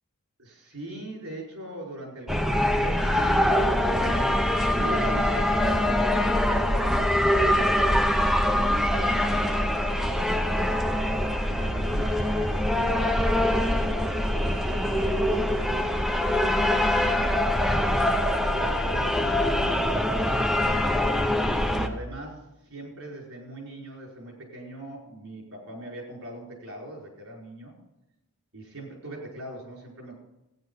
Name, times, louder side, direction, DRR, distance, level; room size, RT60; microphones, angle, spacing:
voice 1, 0.4-4.5 4.7-7.1 7.6-10.6 11.4-16.0 16.8-17.5 18.4-20.5 21.7-27.7 28.5-30.1, right 1 dB, 70° right, -1 dB, 4.9 m, -40 dB
sound 1, 2.3-21.9, left 1 dB, ahead, 0.8 m, -24 dB
14.5 x 9.8 x 5.5 m, 0.91 s
head